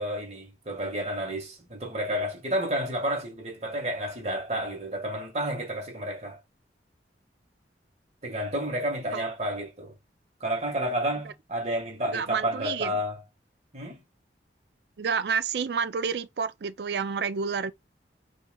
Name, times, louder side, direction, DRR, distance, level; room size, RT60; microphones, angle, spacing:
voice 1, 0.0-6.4 8.2-9.9 10.4-13.2 13.7-14.0, right 1 dB, 40° right, 1.7 m, -31 dB
voice 2, 12.1-12.9 15.0-17.7, right 6 dB, 70° right, 0.4 m, -29 dB
5.5 x 2.7 x 2.3 m
head